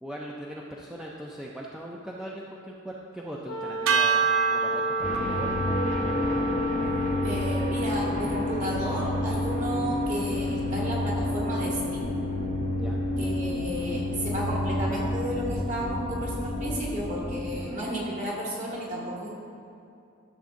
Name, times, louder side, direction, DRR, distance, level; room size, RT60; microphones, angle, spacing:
voice 1, 0.0-5.6 12.8-13.0, equal, 5° right, -4 dB, 0.4 m, -39 dB
Wind instrument woodwind instrument, 3.4-7.6, left 2 dB, 80° left, 0.7 m, -34 dB
sound 1, 3.9-10.2, right 5 dB, 75° right, 0.5 m, -30 dB
sound 2, 5.0-17.6, left 1 dB, 35° left, 0.8 m, -29 dB
voice 2, 6.8-12.1 13.2-19.3, right 1 dB, 35° right, -4 dB, 1.6 m, -33 dB
12.5 x 7.0 x 2.6 m, 2.6 s
head